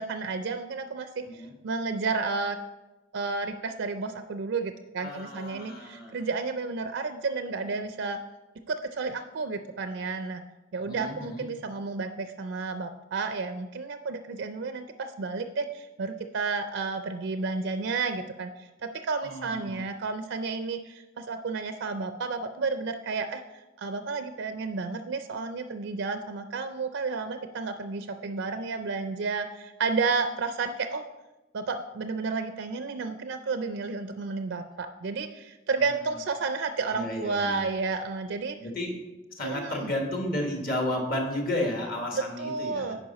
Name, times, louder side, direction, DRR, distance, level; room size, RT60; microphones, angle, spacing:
voice 1, 0.0-2.6 3.1-8.2 8.7-10.4 10.7-31.1 31.5-38.6 39.4-39.9 42.1-43.0, right 4 dB, 65° right, 8 dB, 0.4 m, -31 dB
voice 2, 5.0-6.2 10.8-11.5 19.2-19.8 36.9-37.6 38.6-38.9 39.3-43.0, left 1 dB, 50° left, 1 dB, 1.4 m, -32 dB
9.6 x 5.2 x 4.1 m, 1.1 s
head